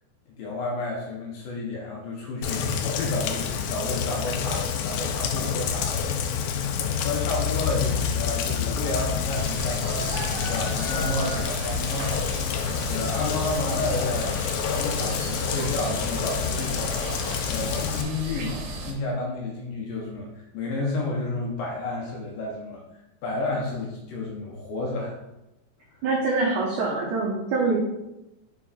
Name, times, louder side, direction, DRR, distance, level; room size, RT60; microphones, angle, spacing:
voice 1, 0.4-6.0 7.0-12.4 12.7-22.8 23.2-25.1 25.9-26.0, left 2 dB, 70° left, -2 dB, 2.3 m, -31 dB
Rain, 2.4-18.0, left 7 dB, 90° left, 2.1 m, -28 dB
sound 1, 9.3-18.9, right 1 dB, 70° right, 2.5 m, -35 dB
voice 2, 26.0-27.8, right 3 dB, 90° right, -3 dB, 1.7 m, -24 dB
6.2 x 4.5 x 4.2 m, 0.93 s
omnidirectional pair, 4.9 m